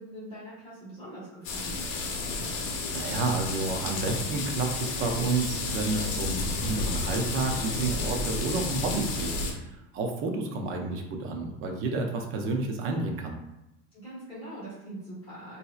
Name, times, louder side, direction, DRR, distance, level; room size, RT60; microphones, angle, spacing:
voice 1, 0.0-1.8 13.9-15.6, right 1 dB, 15° left, -10 dB, 1.4 m, -42 dB
sound 1, 1.4-9.5, left 3 dB, 60° left, 0.8 m, -31 dB
voice 2, 2.9-9.3 9.6-13.4, right 3 dB, 35° right, 3 dB, 0.5 m, -30 dB
3.9 x 2.7 x 2.3 m, 0.92 s
cardioid pair, 155°, 35 cm